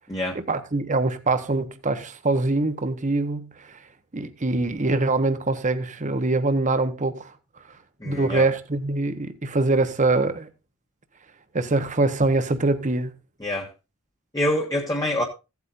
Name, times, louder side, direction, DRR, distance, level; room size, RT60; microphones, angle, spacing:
voice 1, 0.3-3.8 4.1-7.3 8.0-10.5 11.5-13.1, right 2 dB, 35° right, 1.0 m, -24 dB
voice 2, 8.0-8.5 13.4-13.7 14.3-15.2, left 1 dB, 15° left, 1.2 m, -25 dB
15.5 x 8.3 x 2.5 m
head